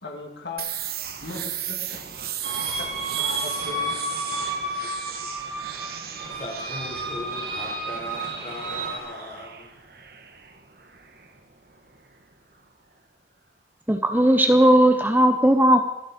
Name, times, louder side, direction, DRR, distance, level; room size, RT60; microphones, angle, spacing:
voice 1, 0.0-2.0 2.8-2.9 3.2-4.0, left 3 dB, 70° left, 1 dB, 2.8 m, -38 dB
sound 1, 0.6-12.2, right 9 dB, 55° right, 1.3 m, -37 dB
sound 2, 2.4-9.0, right 2 dB, 85° right, 5.0 m, -31 dB
voice 2, 4.8-5.6 6.3-9.9, left 1 dB, 35° left, -1 dB, 4.3 m, -39 dB
voice 3, 13.9-15.8, right 1 dB, 10° right, 6 dB, 0.8 m, -17 dB
27.0 x 11.0 x 4.3 m, 0.93 s
head